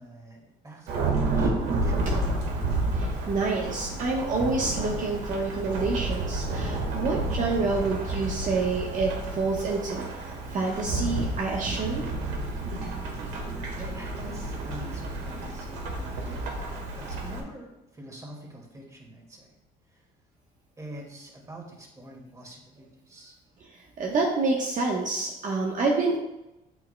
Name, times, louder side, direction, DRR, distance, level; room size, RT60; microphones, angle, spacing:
voice 1, 0.0-2.1 13.8-16.5 16.9-19.5 19.9-20.0 20.8-23.3, right 1 dB, 20° right, 0 dB, 2.0 m, -45 dB
Thunderstorm / Rain, 0.9-17.4, right 2 dB, 90° right, 1.6 m, -30 dB
voice 2, 2.9-10.1 10.5-12.0 24.0-26.2, right 3 dB, 50° right, -1 dB, 1.1 m, -27 dB
8.4 x 7.7 x 2.2 m, 0.93 s
cardioid pair, 110°, 17 cm